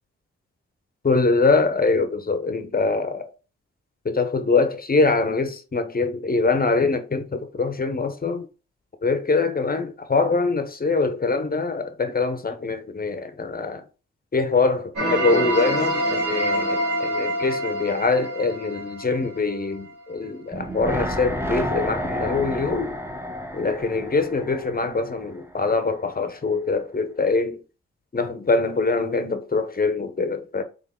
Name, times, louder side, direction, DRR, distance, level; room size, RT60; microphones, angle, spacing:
voice 1, 1.0-3.3 4.0-8.5 9.0-13.8 14.3-23.0 23.5-27.6 28.1-30.6, left 3 dB, 30° left, 0.8 m, -23 dB
sound 1, 15.0-19.8, right 1 dB, 80° right, 1.9 m, -26 dB
sound 2, 20.5-25.7 26.0-26.1, equal, 10° right, 0.9 m, -30 dB
3.6 x 3.5 x 3.6 m
supercardioid pair, 40°, 29 cm